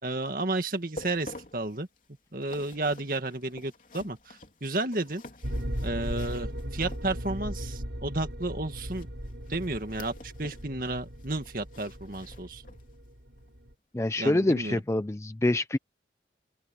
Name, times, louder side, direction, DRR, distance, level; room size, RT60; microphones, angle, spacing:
voice 1, 0.0-1.9 2.3-5.2 5.8-9.1 9.5-12.6 14.2-14.8, right 2 dB, 50° right, 2.1 m, -32 dB
sound 1, 0.7-7.5 8.9-10.7 11.0-13.0 13.4-13.5 14.1-14.2, left 1 dB, 50° left, 3.5 m, -49 dB
sound 2, 5.4-13.7, equal, 80° right, 4.5 m, -37 dB
voice 2, 13.9-15.8, left 1 dB, 15° left, 0.4 m, -26 dB
open air
head